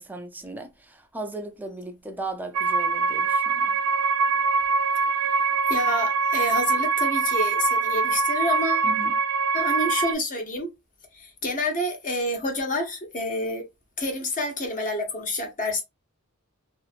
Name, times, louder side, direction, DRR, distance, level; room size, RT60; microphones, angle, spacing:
voice 1, 0.0-3.8 8.8-9.1, right 2 dB, 10° right, 0.4 m, -37 dB
sound 1, 2.5-10.1, right 4 dB, 85° right, 0.4 m, -23 dB
voice 2, 5.7-8.9 9.5-10.7 11.1-13.6 14.0-15.8, left 1 dB, 35° left, 0.9 m, -28 dB
2.8 x 2.5 x 2.4 m
head